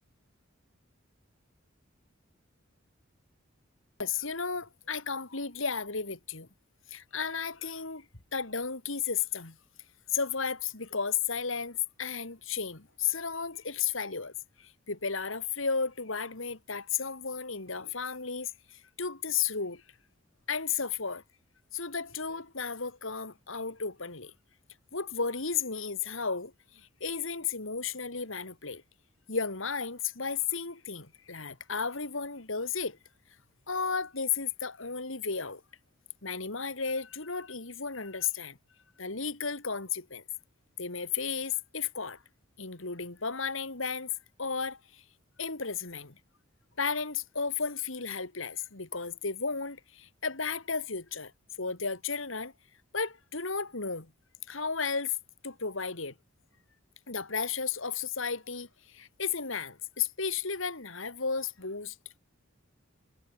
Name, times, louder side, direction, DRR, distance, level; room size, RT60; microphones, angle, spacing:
voice 1, 4.0-6.5 6.9-8.1 8.3-9.6 10.1-19.8 20.5-21.2 21.7-24.3 24.9-28.8 29.3-33.0 33.7-35.6 36.2-38.6 39.0-40.2 40.8-42.2 42.6-44.1 44.4-45.0 45.4-46.2 46.8-51.3 51.6-52.5 52.9-54.1 54.5-55.2 55.4-56.1 57.1-62.2, left 5 dB, 70° left, 2.7 m, -33 dB
head